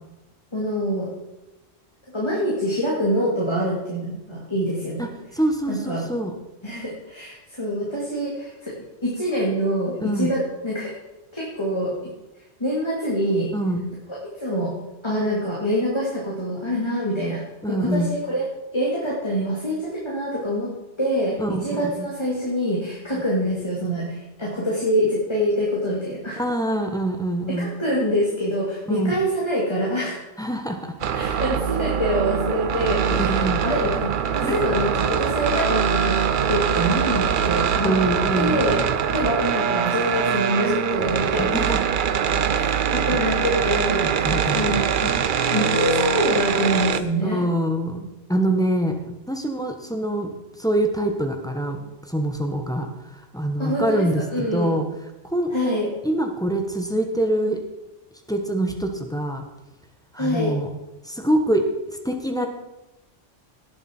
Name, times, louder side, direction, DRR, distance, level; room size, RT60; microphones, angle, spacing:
voice 1, 0.5-1.1 2.1-5.1 5.7-6.0 6.6-8.7 9.0-10.9 11.3-12.0 12.6-13.5 14.1-14.7 15.0-20.7 21.0-26.4 27.5-30.3 31.1-36.2 36.5-38.0 38.3-38.8 39.1-41.8 42.4-45.1 45.5-47.5 53.6-54.0 54.3-54.8 55.5-55.9 60.1-60.5, equal, 20° left, -4 dB, 2.4 m, -25 dB
voice 2, 5.0-6.3 10.0-10.3 13.5-13.9 17.6-18.1 21.4-22.1 23.1-23.2 26.4-27.7 28.9-29.1 30.4-31.0 33.3-33.6 34.4-34.6 37.6-38.6 41.4-41.8 42.6-42.7 44.0-44.6 47.2-49.0 49.3-50.3 50.6-54.9 55.2-55.5 56.0-57.6 58.3-59.4 60.1-60.7 61.0-61.7 62.0-62.5, right 1 dB, 5° left, 4 dB, 1.2 m, -25 dB
sound 1, 31.0-47.0, right 7 dB, 55° right, 0.7 m, -23 dB
18.0 x 7.4 x 4.5 m, 1.0 s
omnidirectional pair, 1.3 m